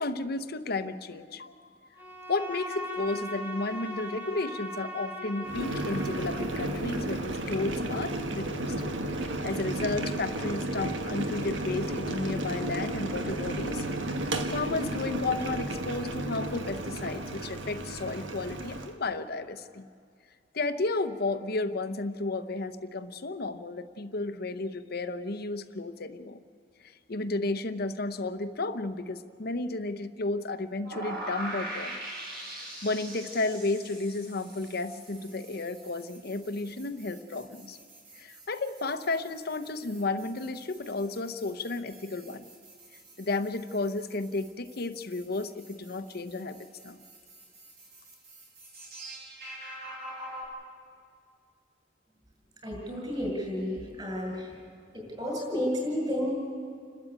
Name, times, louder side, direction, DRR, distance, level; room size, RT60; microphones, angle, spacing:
voice 1, 0.0-1.5 2.3-8.7 9.4-13.9 14.5-19.9 20.5-26.4 26.8-32.0 32.5-37.8 38.2-42.4 43.2-47.0, left 3 dB, 55° left, 11 dB, 0.9 m, -33 dB
Bowed string instrument, 2.0-6.8, left 1 dB, 10° right, 1.8 m, -39 dB
Boiling, 5.4-18.9, right 1 dB, 85° right, 1.5 m, -33 dB
sound 1, 30.8-50.4, right 1 dB, 60° right, 7.4 m, -44 dB
voice 2, 52.6-54.6 54.9-56.3, equal, 25° right, -1 dB, 7.3 m, -31 dB
29.5 x 13.0 x 8.8 m, 2.3 s
head